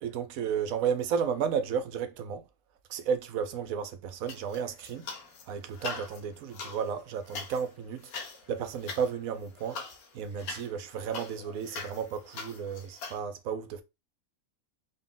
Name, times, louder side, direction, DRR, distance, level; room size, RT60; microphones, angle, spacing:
voice 1, 0.0-2.4 2.9-5.1 5.5-8.1 8.5-9.8 10.1-13.8, right 7 dB, 75° right, 1.0 m, -33 dB
sound 1, 4.3-5.4 5.7-13.2, left 4 dB, 90° left, 1.3 m, -42 dB
4.0 x 2.4 x 3.6 m
omnidirectional pair, 1.5 m